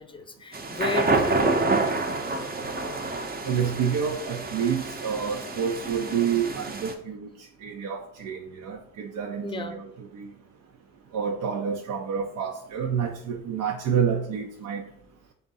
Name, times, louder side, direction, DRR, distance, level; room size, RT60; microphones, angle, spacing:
voice 1, 0.0-2.1 9.4-9.8, left 4 dB, 15° left, 7 dB, 0.7 m, -34 dB
sound 1, 0.5-6.9, right 3 dB, 25° right, 0.8 m, -28 dB
voice 2, 3.5-7.3 7.6-10.3 11.1-14.8, right 7 dB, 55° right, 2 dB, 0.6 m, -28 dB
3.5 x 2.7 x 4.1 m, 0.67 s
hypercardioid pair, 55°, 37 cm